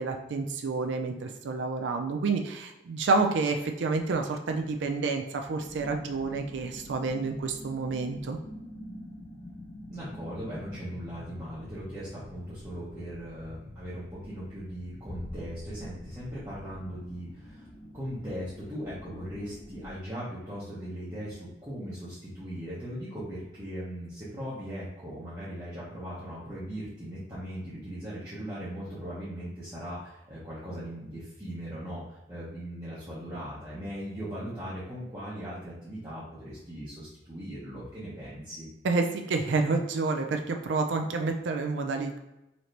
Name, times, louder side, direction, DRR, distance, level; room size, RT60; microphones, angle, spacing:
voice 1, 0.0-8.4 38.8-42.2, right 3 dB, 90° right, 4 dB, 0.4 m, -29 dB
sound 1, 5.6-20.0, left 1 dB, 30° left, 0.5 m, -47 dB
voice 2, 9.9-17.7 17.9-38.7, equal, 20° right, -11 dB, 1.0 m, -39 dB
sound 2, 15.0-17.6, left 1 dB, 10° left, 1.1 m, -44 dB
4.1 x 2.9 x 3.2 m, 0.93 s
head